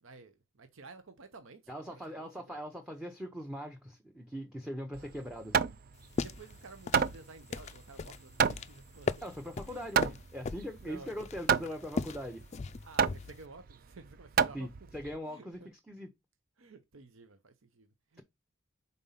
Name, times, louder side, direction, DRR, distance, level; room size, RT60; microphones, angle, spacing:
voice 1, 0.0-1.6 1.9-2.6 5.0-5.1 6.1-9.3 9.6-10.0 10.7-11.2 12.8-14.7 15.3-15.7 16.6-18.2, right 3 dB, 75° right, 0.8 m, -53 dB
voice 2, 1.7-5.6 9.2-12.4 14.5-16.1, equal, 5° right, 0.7 m, -41 dB
Hammer, 4.9-15.2, right 6 dB, 45° right, 0.4 m, -32 dB
sound 1, 5.9-13.4, left 4 dB, 35° left, 0.3 m, -39 dB
5.3 x 4.1 x 5.6 m
head